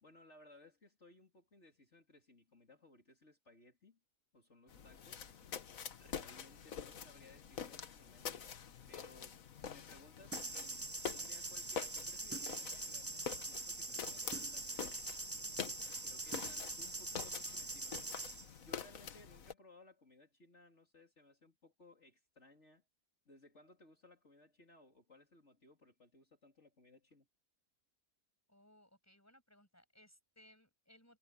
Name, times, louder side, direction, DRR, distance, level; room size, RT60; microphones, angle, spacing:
voice 1, 0.0-4.0 4.3-5.3 6.0-8.4 8.9-15.0 16.0-18.0 18.5-22.8 23.3-27.3, left 2 dB, 55° left, 3.9 m, -62 dB
sound 1, 4.7-19.5, left 7 dB, 75° left, 1.6 m, -47 dB
sound 2, 10.3-18.5, right 2 dB, 15° right, 0.4 m, -43 dB
voice 2, 28.5-31.2, left 1 dB, 10° left, 7.0 m, -65 dB
omnidirectional pair, 1.5 m